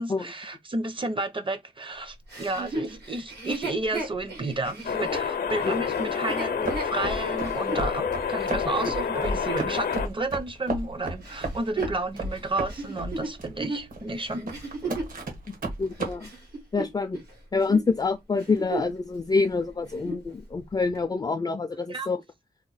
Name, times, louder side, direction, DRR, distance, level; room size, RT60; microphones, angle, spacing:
voice 1, 0.0-14.5 14.8-15.0 21.9-22.1, right 2 dB, 30° right, 0.6 m, -32 dB
Chuckle chortle, 2.3-7.9 8.5-8.6 11.2-15.2 15.8-17.3 17.6-17.9 18.3-19.0 19.3-19.4 19.8-20.3 20.9-21.0, right 3 dB, 90° right, 1.7 m, -35 dB
sound 1, 4.8-10.1, left 7 dB, 75° left, 0.6 m, -29 dB
sound 2, 6.6-16.1, right 2 dB, 60° right, 1.1 m, -33 dB
voice 2, 15.5-16.3 16.7-17.2 17.5-22.2, left 4 dB, 25° left, 0.4 m, -26 dB
2.9 x 2.1 x 4.0 m
cardioid pair, 75°, 16 cm